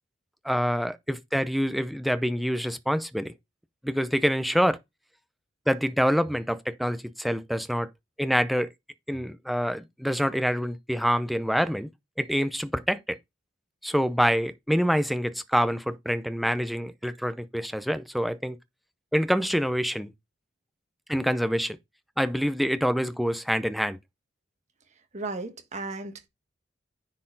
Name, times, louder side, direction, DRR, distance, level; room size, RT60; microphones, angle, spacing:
voice 1, 0.4-3.3 3.8-4.8 5.7-7.9 8.2-8.7 9.1-11.9 12.2-13.2 13.8-18.6 19.1-20.1 21.1-21.8 22.2-24.0, equal, ahead, 0.5 m, -26 dB
voice 2, 25.1-26.3, right 3 dB, 40° right, 1.4 m, -35 dB
9.7 x 4.3 x 3.9 m
head